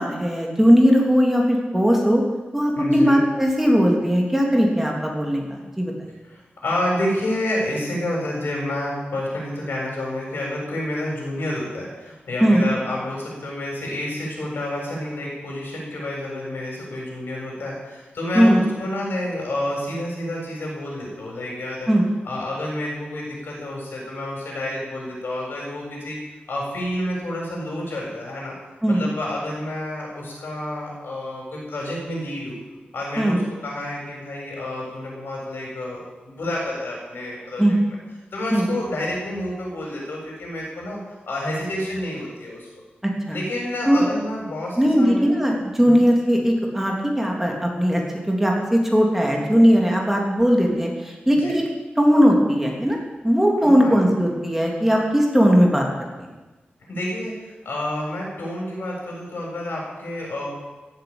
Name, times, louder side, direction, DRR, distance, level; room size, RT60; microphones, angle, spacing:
voice 1, 0.0-2.2 2.5-5.9 12.4-12.6 18.3-18.6 21.9-22.0 28.8-29.0 33.2-33.4 37.6-37.7 38.5-38.7 43.3-43.4 43.8-44.0 44.8-48.0 48.3-50.9 51.3-51.6 52.0-53.0 53.2-55.8 56.2-56.3, equal, 10° right, -1 dB, 3.1 m, -18 dB
voice 2, 2.8-3.2 6.2-21.9 22.2-26.2 26.5-28.5 28.9-32.6 32.9-37.8 38.3-41.0 41.3-42.8 43.3-45.3 45.8-46.0 51.4-51.6 53.6-54.1 56.9-57.3 57.6-60.5, left 1 dB, 80° left, -3 dB, 7.3 m, -29 dB
16.0 x 9.0 x 8.9 m, 1.2 s
wide cardioid pair, 105°, 4 cm